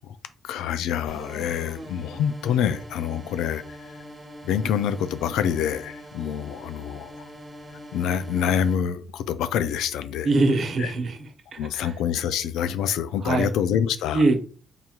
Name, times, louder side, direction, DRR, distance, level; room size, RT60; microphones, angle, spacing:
voice 1, 0.4-3.6 3.9-4.0 4.4-7.1 7.9-10.3 10.8-10.9 11.6-14.2, left 8 dB, 85° left, 0.4 m, -26 dB
sound 1, 1.1-8.7, equal, 20° right, 1.2 m, -43 dB
voice 2, 10.2-11.2 11.5-11.9 13.2-13.5 14.1-14.4, right 3 dB, 50° right, 0.9 m, -22 dB
3.7 x 2.3 x 4.4 m
cardioid pair, 90°, 0 cm